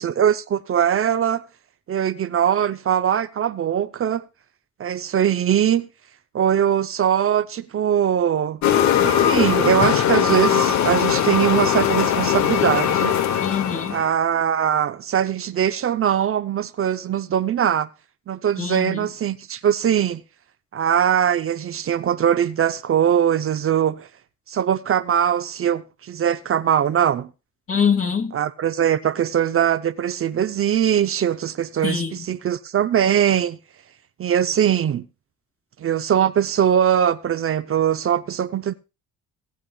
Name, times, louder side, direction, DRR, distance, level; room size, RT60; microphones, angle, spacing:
voice 1, 0.0-1.4 1.9-4.2 4.8-5.9 6.3-8.6 9.0-13.2 13.9-17.9 18.3-20.2 20.7-24.1 24.5-27.3 28.3-33.6 34.2-35.1 35.8-38.7, right 9 dB, 45° right, 0.6 m, -21 dB
sound 1, 8.6-14.1, left 9 dB, 70° left, 1.0 m, -20 dB
voice 2, 13.4-14.0 18.6-19.1 27.7-28.4 31.8-32.2, left 6 dB, 45° left, 2.8 m, -24 dB
18.5 x 8.6 x 2.3 m
cardioid pair, 90°, 30 cm